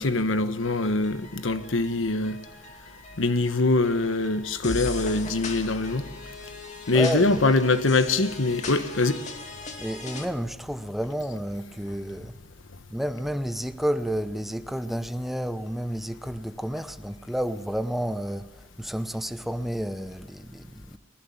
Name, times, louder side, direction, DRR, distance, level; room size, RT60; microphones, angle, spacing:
voice 1, 0.0-2.4 3.2-6.1 6.9-9.2, left 2 dB, 90° left, 1.2 m, -23 dB
sound 1, 0.6-10.3, left 3 dB, 40° left, 2.3 m, -39 dB
voice 2, 6.9-7.4 9.8-12.4 12.9-21.0, equal, ahead, 0.7 m, -31 dB
19.5 x 19.5 x 7.1 m
head